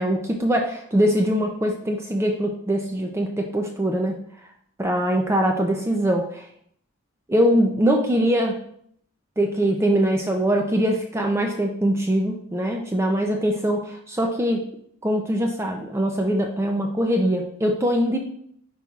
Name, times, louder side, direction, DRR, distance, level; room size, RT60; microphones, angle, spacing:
voice 1, 0.0-4.2 4.8-6.5 7.3-8.6 9.4-14.6 15.0-18.2, equal, 10° right, 2 dB, 0.4 m, -22 dB
9.2 x 4.4 x 2.4 m, 0.68 s
head